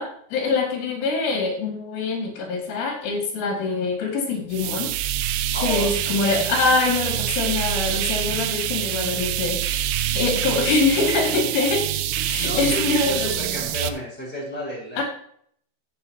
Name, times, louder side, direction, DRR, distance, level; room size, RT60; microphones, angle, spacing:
voice 1, 0.0-4.9 5.6-9.9 10.1-11.8 12.3-13.3 15.0-15.1, left 4 dB, 75° left, 1 dB, 4.9 m, -24 dB
sound 1, 4.5-13.9, right 11 dB, 80° right, 2.9 m, -26 dB
voice 2, 5.5-6.1 12.2-15.0, left 1 dB, ahead, -4 dB, 4.5 m, -31 dB
14.0 x 8.4 x 2.9 m, 0.63 s
omnidirectional pair, 5.6 m